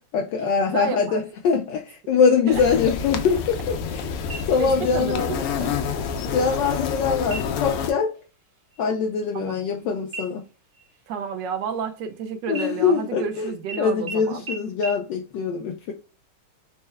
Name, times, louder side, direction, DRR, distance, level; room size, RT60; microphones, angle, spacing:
voice 1, 0.1-4.1 4.5-5.3 6.3-8.1 8.8-10.4 12.5-13.5 13.8-15.9, left 6 dB, 70° left, 1.1 m, -23 dB
voice 2, 0.7-1.2 2.5-2.6 4.6-5.7 9.3-9.6 11.1-14.4, right 6 dB, 75° right, 1.1 m, -31 dB
sound 1, 2.5-7.9, left 6 dB, 90° left, 1.6 m, -28 dB
sound 2, 4.3-5.0 5.4-5.5 6.0-6.5 7.2-7.8 8.1-8.4 8.7-9.8 10.1-12.1 12.5-13.3 13.7-13.8 14.1-14.2 14.5-14.6 14.8-14.9, right 3 dB, 45° right, 0.8 m, -38 dB
4.4 x 2.0 x 3.4 m
omnidirectional pair, 2.4 m